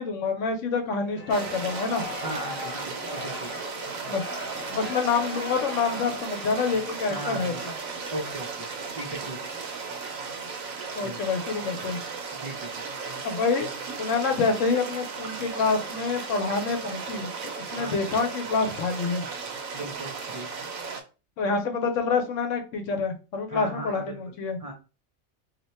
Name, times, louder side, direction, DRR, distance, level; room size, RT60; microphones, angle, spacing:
voice 1, 0.0-2.0 4.1-4.2 4.7-7.5 10.9-12.0 13.2-13.7 14.0-17.3 17.6-19.2 21.4-24.6, left 4 dB, 70° left, 5 dB, 1.0 m, -27 dB
sound 1, 1.0-8.2, left 2 dB, 15° left, 0.5 m, -39 dB
sound 2, 1.3-21.0, right 5 dB, 85° right, 1.1 m, -36 dB
voice 2, 2.2-3.5 7.1-7.6 8.1-9.4 11.0-11.2 12.3-12.9 17.7-18.1 19.7-20.5 23.5-24.2 24.6-24.7, right 1 dB, 65° right, 0 dB, 0.3 m, -37 dB
2.7 x 2.1 x 4.1 m, 0.32 s
omnidirectional pair, 1.4 m